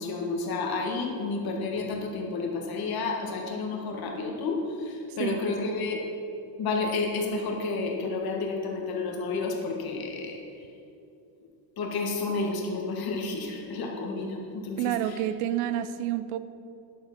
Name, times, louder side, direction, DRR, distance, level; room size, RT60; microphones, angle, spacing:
voice 1, 0.0-6.0 6.6-10.4 11.8-15.2, left 3 dB, 45° left, 1 dB, 1.7 m, -31 dB
voice 2, 14.8-16.4, right 12 dB, 90° right, 13 dB, 0.7 m, -29 dB
11.0 x 7.2 x 5.9 m, 2.6 s
cardioid pair, 165°, 50 cm